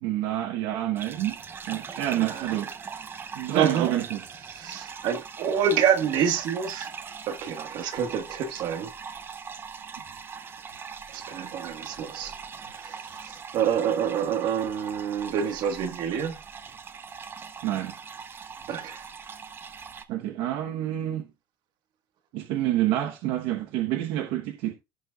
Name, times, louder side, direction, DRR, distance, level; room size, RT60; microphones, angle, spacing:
voice 1, 0.0-1.4 1.7-2.7 3.3-4.2 17.6-17.9 20.1-21.3 22.3-24.7, right 13 dB, 80° right, 1.1 m, -28 dB
sound 1, 1.0-20.0, right 6 dB, 25° right, 0.8 m, -41 dB
voice 2, 2.1-2.6 3.5-4.0 4.5-6.9 7.3-8.9 11.1-12.3 12.6-16.4 18.7-19.0, right 8 dB, 60° right, 1.6 m, -27 dB
16.0 x 6.6 x 2.4 m
cardioid pair, 155°, 8 cm